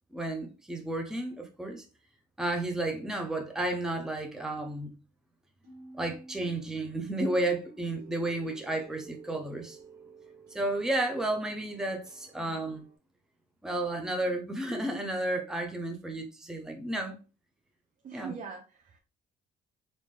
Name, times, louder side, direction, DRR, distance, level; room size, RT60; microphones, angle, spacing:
voice 1, 0.1-1.8 2.4-4.9 5.9-9.8 10.5-12.8 13.6-17.2 18.1-18.3, right 2 dB, 5° right, 0.6 m, -32 dB
sound 1, 5.6-12.9, right 3 dB, 70° right, 1.6 m, -52 dB
voice 2, 18.0-19.0, right 6 dB, 45° right, 0.7 m, -43 dB
3.6 x 2.6 x 3.2 m
cardioid pair, 110°, 17 cm